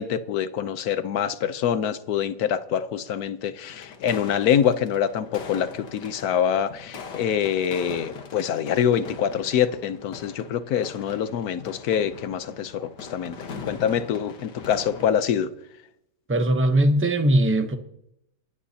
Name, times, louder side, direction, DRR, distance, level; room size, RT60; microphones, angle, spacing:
voice 1, 0.0-15.5, left 8 dB, 65° left, 1.2 m, -25 dB
sound 1, 3.6-15.3, left 5 dB, 85° left, 2.0 m, -41 dB
voice 2, 16.3-17.8, right 1 dB, 15° right, 0.5 m, -20 dB
28.0 x 10.0 x 2.8 m
omnidirectional pair, 1.8 m